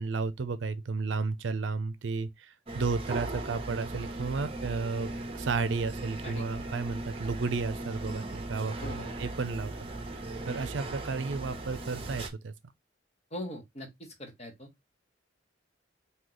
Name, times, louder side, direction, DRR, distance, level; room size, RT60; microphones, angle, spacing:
voice 1, 0.0-5.1 5.3-8.9 9.2-9.7 10.5-12.5, right 4 dB, 75° right, 0.5 m, -33 dB
sound 1, 2.7-12.3, right 2 dB, 30° right, 0.7 m, -38 dB
voice 2, 8.8-9.1 13.3-14.7, left 1 dB, 35° left, 1.1 m, -41 dB
3.0 x 2.8 x 3.8 m
head